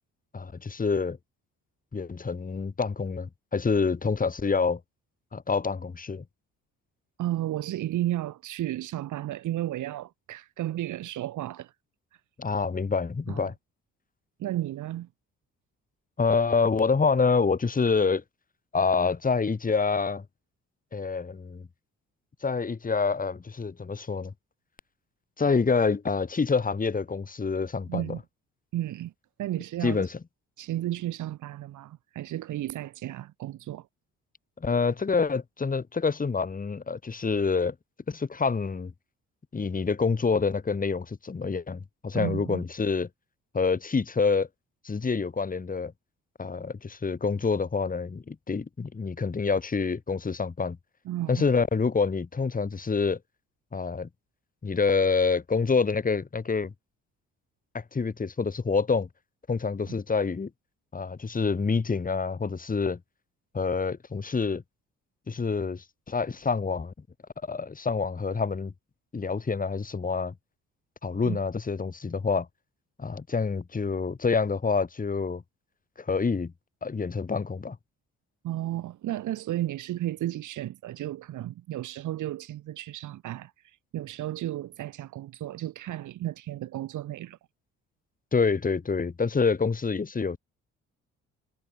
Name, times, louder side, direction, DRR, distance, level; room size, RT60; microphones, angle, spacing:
voice 1, 0.3-1.2 1.9-4.8 5.3-6.2 12.4-13.5 16.2-18.2 18.7-20.2 20.9-21.6 22.4-24.3 25.4-28.0 29.8-30.2 34.6-37.7 38.1-38.9 39.5-43.1 43.5-44.5 44.8-45.9 46.4-50.8 51.3-53.2 53.7-54.1 54.6-56.7 57.7-59.1 59.5-60.5 60.9-63.0 63.5-64.6 65.3-66.9 67.5-68.7 69.1-70.3 71.0-72.5 73.0-75.4 76.0-76.5 76.8-77.8 88.3-90.4, left 4 dB, 25° left, 2.5 m, -27 dB
voice 2, 7.2-11.7 12.1-12.2 13.3-13.4 14.4-15.1 27.9-28.2 28.7-29.1 29.4-30.1 30.6-33.9 42.1-42.6 51.1-51.4 59.9-60.0 71.3-71.4 78.4-87.4, right 14 dB, 80° right, 2.1 m, -33 dB
cardioid pair, 90°, 30 cm